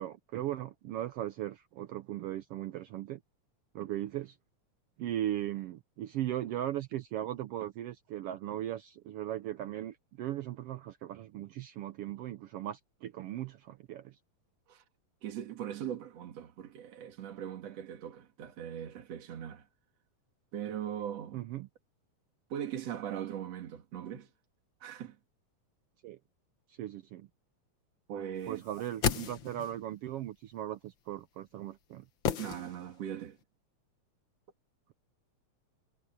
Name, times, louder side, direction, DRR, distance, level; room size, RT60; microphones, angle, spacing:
voice 1, 0.0-3.2 3.7-4.4 5.0-14.2 21.3-21.7 26.0-26.2 26.7-27.3 28.5-32.1, right 12 dB, 75° right, 1.4 m, -38 dB
voice 2, 15.2-19.7 20.5-21.4 22.5-24.3 24.8-25.2 28.1-28.6 32.4-33.4, right 10 dB, 60° right, 3.0 m, -40 dB
sound 1, 28.6-29.9 32.2-33.2 33.4-33.5, left 8 dB, 55° left, 1.6 m, -34 dB
omnidirectional pair, 3.3 m